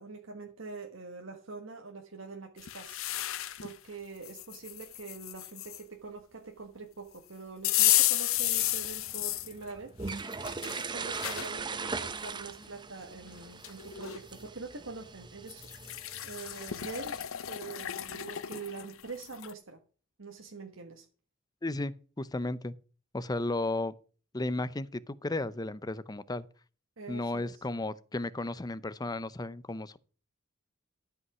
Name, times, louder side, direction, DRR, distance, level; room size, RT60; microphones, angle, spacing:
voice 1, 0.0-3.0 3.6-9.9 10.6-16.0 16.2-17.2 17.5-19.8 20.2-21.1 27.0-27.6, right 4 dB, 80° right, 1.5 m, -44 dB
sound 1, 2.6-3.7 4.2-5.8 7.6-9.5 10.1-11.5 12.1-12.2 13.3-13.4 13.6-14.2 15.5-19.5, left 15 dB, 85° left, 0.6 m, -32 dB
sound 2, 8.4-17.2, right 4 dB, 20° right, 0.6 m, -41 dB
voice 2, 21.6-22.7 23.1-23.9 24.3-26.5 27.1-30.0, left 2 dB, 20° left, 0.6 m, -34 dB
12.5 x 5.5 x 6.1 m
head